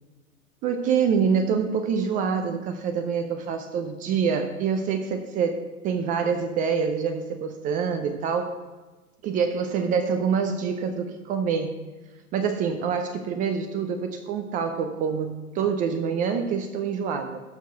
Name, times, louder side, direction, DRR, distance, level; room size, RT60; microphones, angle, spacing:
voice 1, 0.6-8.5 9.2-11.8 12.3-17.4, right 6 dB, 20° right, 7 dB, 0.5 m, -26 dB
12.5 x 4.6 x 6.9 m, 1.2 s
hypercardioid pair, 115°, 45 cm